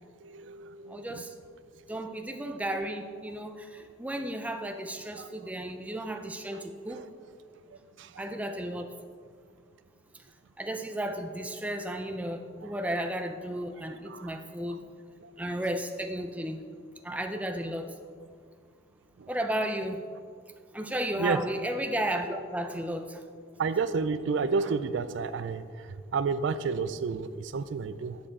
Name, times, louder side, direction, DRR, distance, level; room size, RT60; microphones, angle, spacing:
voice 1, 0.2-1.1 5.2-5.3 8.0-8.1 14.1-14.4 15.2-15.3 19.2-19.3 21.2-21.4 23.6-25.6 26.1-28.2, right 5 dB, 75° right, 13 dB, 0.4 m, -30 dB
voice 2, 0.9-1.3 1.9-7.1 8.2-8.9 10.1-10.2 10.6-14.8 15.4-16.7 17.0-18.0 19.3-20.0 20.7-23.2, right 1 dB, 5° right, 6 dB, 0.4 m, -33 dB
11.5 x 7.4 x 3.7 m, 2.1 s
head